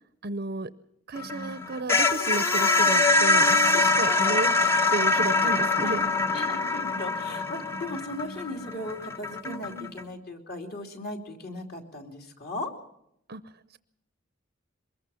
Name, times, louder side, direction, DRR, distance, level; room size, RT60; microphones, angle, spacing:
voice 1, 0.2-0.7 1.1-4.5 4.9-6.0 9.4-9.9 13.3-13.4, right 3 dB, 45° right, 12 dB, 0.7 m, -33 dB
sound 1, 1.2-10.0, left 3 dB, 10° left, 0.8 m, -24 dB
voice 2, 4.0-4.4 5.4-5.9 6.3-12.7, left 1 dB, 45° left, 3 dB, 2.9 m, -38 dB
23.5 x 21.0 x 5.6 m, 0.76 s
head